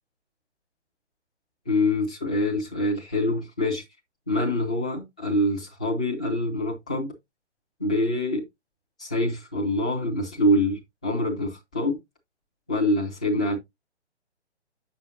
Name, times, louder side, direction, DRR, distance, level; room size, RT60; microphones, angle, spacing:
voice 1, 1.7-3.8 4.3-7.1 7.8-8.4 9.0-12.0 12.7-13.6, left 1 dB, 5° left, 0.4 m, -25 dB
7.6 x 6.2 x 2.7 m
figure-of-eight pair, 135°, 34 cm